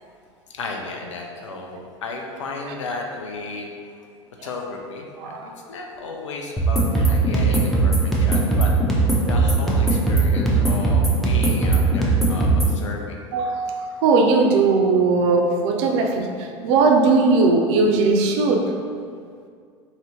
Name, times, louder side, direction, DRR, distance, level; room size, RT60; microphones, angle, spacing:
voice 1, 0.5-4.0 4.4-8.7 9.0-13.2, left 3 dB, 85° left, 1 dB, 0.4 m, -34 dB
sound 1, 6.6-12.8, right 3 dB, ahead, 0.6 m, -19 dB
voice 2, 13.3-13.7 14.0-18.7, right 3 dB, 60° right, 2 dB, 0.4 m, -19 dB
2.7 x 2.6 x 2.9 m, 2.2 s
hypercardioid pair, 80°, 15 cm